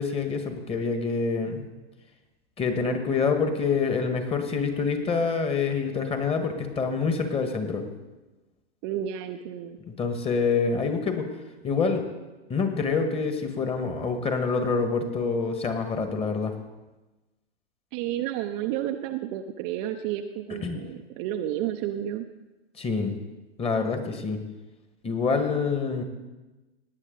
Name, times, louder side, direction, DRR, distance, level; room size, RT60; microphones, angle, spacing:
voice 1, 0.0-1.6 2.6-7.8 10.0-11.3 11.6-12.0 12.5-16.5 20.6-20.8 22.8-23.1 23.6-24.4 25.0-26.0, left 4 dB, 15° left, 6 dB, 1.5 m, -26 dB
voice 2, 8.8-9.8 17.9-22.2, right 11 dB, 30° right, 5 dB, 0.6 m, -31 dB
18.0 x 9.8 x 3.9 m, 1.1 s
hypercardioid pair, 115°, 33 cm